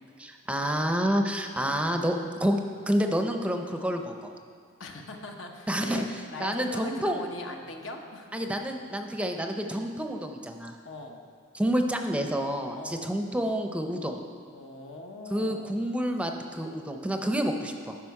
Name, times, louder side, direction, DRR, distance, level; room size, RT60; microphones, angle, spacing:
voice 1, 0.2-2.6 2.9-4.3 5.7-6.0 6.4-7.2 8.3-10.8 11.5-14.2 15.3-18.0, equal, 5° right, 4 dB, 0.5 m, -28 dB
voice 2, 1.5-1.8 4.8-8.3 10.8-11.2 12.7-13.1 14.5-15.8, left 2 dB, 80° left, 3 dB, 1.0 m, -41 dB
12.5 x 5.8 x 4.7 m, 2.1 s
head